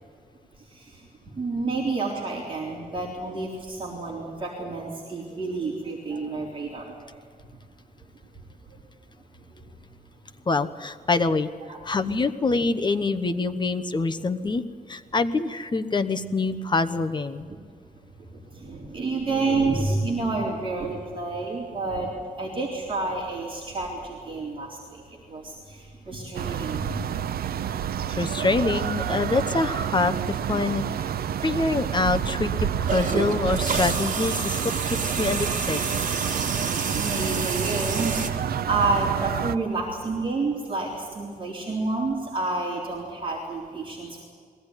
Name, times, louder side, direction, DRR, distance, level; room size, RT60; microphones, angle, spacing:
voice 1, 1.4-6.9 11.7-11.8 18.5-22.1 22.4-24.8 25.3-26.9 36.9-44.2, right 3 dB, 35° right, -3 dB, 3.7 m, -29 dB
voice 2, 10.5-11.5 11.8-14.6 14.9-17.5 28.1-30.8 31.4-35.8, left 3 dB, 30° left, 10 dB, 1.0 m, -25 dB
sound 1, 26.3-39.6, right 9 dB, 90° right, 0.6 m, -29 dB
sound 2, 32.9-38.3, right 4 dB, 55° right, 2.4 m, -29 dB
21.5 x 17.0 x 9.9 m, 2.1 s
wide cardioid pair, 150°, 15 cm